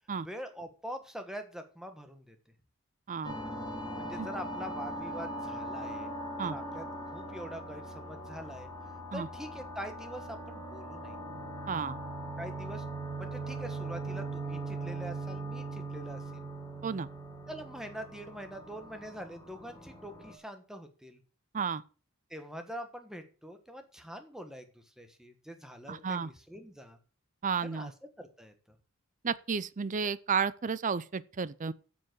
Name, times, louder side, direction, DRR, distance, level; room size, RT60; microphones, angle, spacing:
voice 1, 0.2-2.4 4.0-6.1 6.4-8.7 9.1-11.2 12.4-12.8 13.1-16.5 17.5-21.2 22.3-27.0 27.6-27.9 28.2-28.8, equal, ahead, 1.3 m, -44 dB
sound 1, 3.2-20.3, right 2 dB, 20° left, 2.5 m, -40 dB
voice 2, 11.7-12.0 16.8-17.1 21.5-21.8 25.9-26.3 27.4-27.9 29.2-31.7, right 6 dB, 35° right, 0.5 m, -32 dB
7.5 x 7.1 x 7.7 m
head